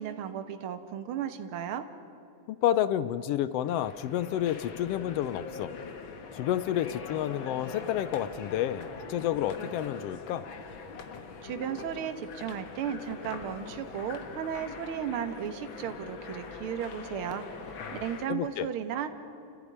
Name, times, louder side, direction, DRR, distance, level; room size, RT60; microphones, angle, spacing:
voice 1, 0.0-1.8 11.4-19.1, right 9 dB, 55° right, 8 dB, 1.8 m, -35 dB
voice 2, 2.5-5.7 6.3-10.4 17.9-18.0 18.3-18.7, left 11 dB, 80° left, 15 dB, 1.4 m, -30 dB
sound 1, 3.6-18.3, left 5 dB, 50° left, 1.8 m, -42 dB
30.0 x 15.5 x 9.7 m, 2.7 s
omnidirectional pair, 3.5 m